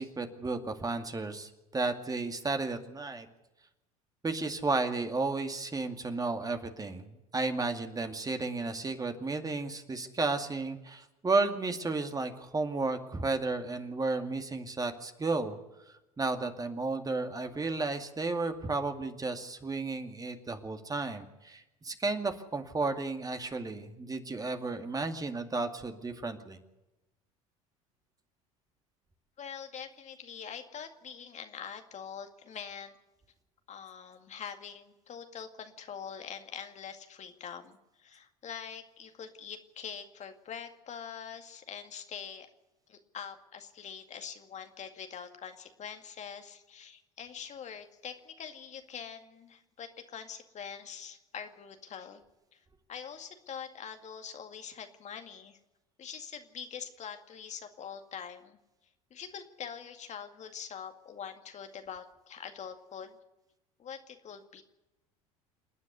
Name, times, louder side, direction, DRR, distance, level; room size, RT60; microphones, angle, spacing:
voice 1, 0.0-3.3 4.2-15.6 16.2-26.6, right 3 dB, 20° right, 6 dB, 2.3 m, -33 dB
voice 2, 29.4-32.9 33.7-42.5 42.9-52.2 52.5-52.6 52.9-55.6 56.0-58.6 59.1-63.2 63.8-64.6, left 7 dB, 40° left, 6 dB, 2.2 m, -44 dB
28.0 x 9.7 x 9.7 m, 0.98 s
hypercardioid pair, 70°, 18 cm